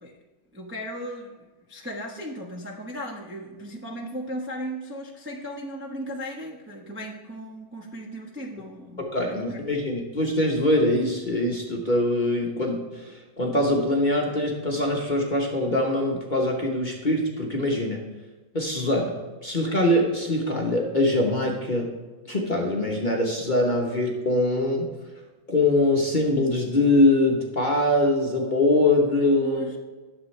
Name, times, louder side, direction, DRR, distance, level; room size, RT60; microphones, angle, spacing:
voice 1, 0.5-1.3 1.7-9.6 29.4-29.8, equal, 15° right, -3 dB, 0.4 m, -36 dB
voice 2, 9.0-18.0 18.5-21.9 22.3-24.9 25.5-29.7, left 1 dB, 35° left, -1 dB, 0.8 m, -23 dB
11.0 x 7.1 x 3.2 m, 1.3 s
omnidirectional pair, 2.1 m